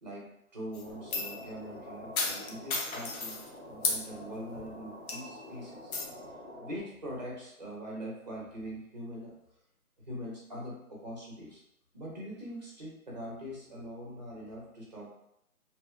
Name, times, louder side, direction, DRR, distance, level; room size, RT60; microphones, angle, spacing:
voice 1, 0.0-3.4 3.7-9.4 10.1-11.6 11.9-15.1, equal, 30° right, -4 dB, 0.6 m, -43 dB
sound 1, 0.7-1.4 2.2-3.4 3.8-4.0 4.5-4.7 5.1-5.4 5.9-6.1, left 3 dB, 70° left, 0.7 m, -33 dB
sound 2, 0.8-6.8, left 1 dB, 45° left, 1.1 m, -47 dB
2.7 x 2.2 x 2.3 m, 0.80 s
hypercardioid pair, 165°, 44 cm